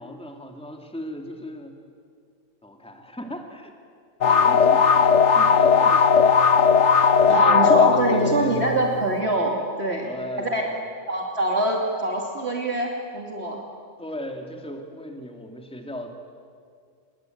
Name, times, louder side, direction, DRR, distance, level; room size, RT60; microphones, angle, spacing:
voice 1, 0.0-1.8 2.6-3.7 4.3-5.1 5.3-6.4 7.3-8.8 10.0-10.9 14.0-16.1, left 1 dB, 5° left, 3 dB, 2.4 m, -36 dB
sound 1, 4.2-8.9, left 6 dB, 65° left, 1.3 m, -17 dB
voice 2, 7.3-10.1 10.4-10.7 11.1-13.6, right 2 dB, 55° right, 0 dB, 2.9 m, -24 dB
27.5 x 22.0 x 9.2 m, 2.2 s
omnidirectional pair, 1.3 m